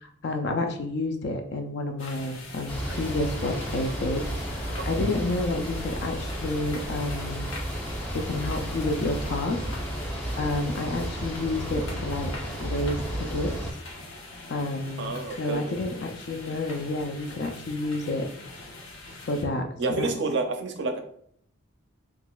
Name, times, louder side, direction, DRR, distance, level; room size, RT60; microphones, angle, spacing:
voice 1, 0.0-7.5 8.1-9.6 10.0-10.1 10.4-12.3 12.6-13.5 14.5-18.3 19.3-19.7 20.0-20.1, left 2 dB, 50° left, 4 dB, 0.4 m, -30 dB
sound 1, 2.0-19.4, left 2 dB, 65° left, 0.9 m, -43 dB
sound 2, 2.7-13.7, equal, 5° left, 0.7 m, -33 dB
voice 2, 15.0-15.7 19.8-21.0, right 3 dB, 55° right, 6 dB, 0.5 m, -29 dB
3.7 x 2.9 x 2.3 m, 0.66 s
head